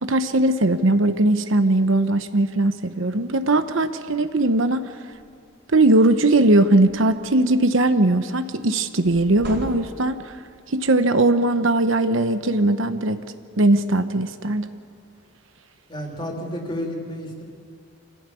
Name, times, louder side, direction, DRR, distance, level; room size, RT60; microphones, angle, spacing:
voice 1, 0.0-4.9 5.7-10.3 10.7-13.2 13.6-14.7, right 2 dB, 75° right, 10 dB, 1.0 m, -19 dB
sound 1, 5.1-5.4 5.8-6.0 6.3-7.4 9.0-10.3, right 1 dB, 55° right, 4.6 m, -38 dB
voice 2, 15.9-17.4, equal, 25° left, 1 dB, 3.3 m, -31 dB
26.0 x 17.0 x 8.5 m, 2.4 s
head